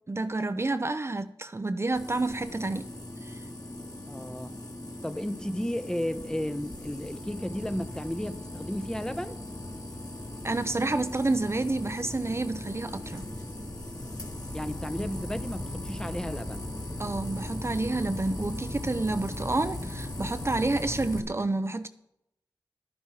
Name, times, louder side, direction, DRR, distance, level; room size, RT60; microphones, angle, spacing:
voice 1, 0.1-2.9 3.2-3.4 10.4-13.3 17.0-21.9, right 2 dB, 35° right, 0.6 m, -29 dB
sound 1, 1.9-21.2, left 1 dB, 50° left, 2.3 m, -38 dB
voice 2, 4.1-4.5 5.0-9.4 14.5-16.7, equal, 10° left, 0.8 m, -33 dB
11.0 x 10.0 x 4.8 m
cardioid pair, 50°, 8 cm